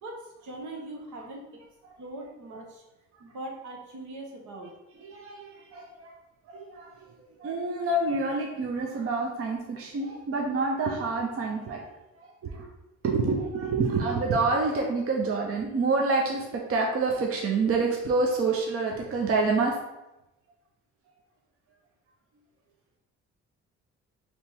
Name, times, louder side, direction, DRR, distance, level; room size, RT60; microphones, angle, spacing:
voice 1, 0.0-1.5 2.0-2.8 3.2-4.7, right 2 dB, 75° right, 0 dB, 1.1 m, -41 dB
voice 2, 5.0-6.2 6.5-11.9 12.1-12.7 13.0-19.8, right 3 dB, 50° right, 0 dB, 0.7 m, -27 dB
3.4 x 3.0 x 4.4 m, 0.95 s
cardioid pair, 90°, 30 cm